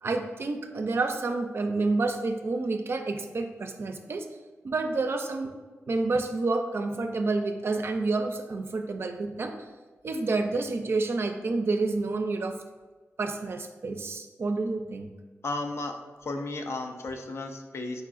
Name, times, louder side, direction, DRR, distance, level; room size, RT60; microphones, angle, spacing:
voice 1, 0.0-4.3 4.6-5.5 5.9-9.5 10.0-12.6 13.2-15.1, right 3 dB, 50° right, 6 dB, 0.4 m, -29 dB
voice 2, 15.4-15.9 16.2-18.0, left 2 dB, 60° left, 5 dB, 0.4 m, -34 dB
4.6 x 4.1 x 2.5 m, 1.3 s
wide cardioid pair, 120°, 5 cm